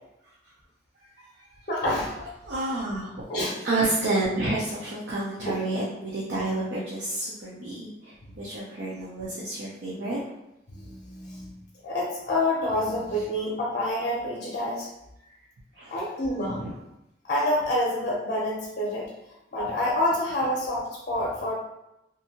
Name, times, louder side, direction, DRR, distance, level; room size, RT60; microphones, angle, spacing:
voice 1, 1.7-2.1 3.3-3.6 5.5-5.6 8.2-8.3 10.7-11.6 11.8-14.9 15.9-16.6 17.2-19.1 19.5-21.5, left 1 dB, 50° left, -4 dB, 0.5 m, -27 dB
voice 2, 2.2-3.2 3.6-10.2 15.7-16.0 16.5-16.7, right 2 dB, 85° right, -6 dB, 0.5 m, -30 dB
2.6 x 2.6 x 2.8 m, 0.89 s
head